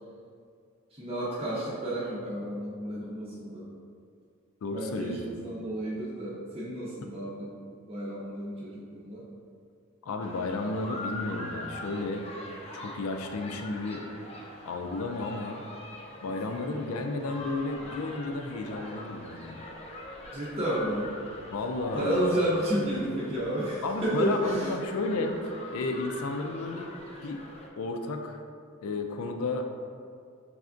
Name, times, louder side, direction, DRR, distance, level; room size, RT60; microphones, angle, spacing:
voice 1, 0.9-3.7 4.7-7.5 7.9-9.2 16.5-16.6 20.3-21.1 21.9-24.7, right 1 dB, 25° right, -7 dB, 0.6 m, -31 dB
voice 2, 4.6-5.2 7.0-7.1 10.0-12.3 12.8-14.1 14.6-15.6 16.2-19.6 21.5-22.3 23.8-25.4 25.7-27.5 27.8-28.4 28.8-29.7, left 3 dB, 85° left, 5 dB, 0.4 m, -32 dB
sound 1, 10.2-27.7, left 1 dB, 30° left, 0.5 m, -43 dB
6.2 x 3.3 x 2.5 m, 2.3 s
head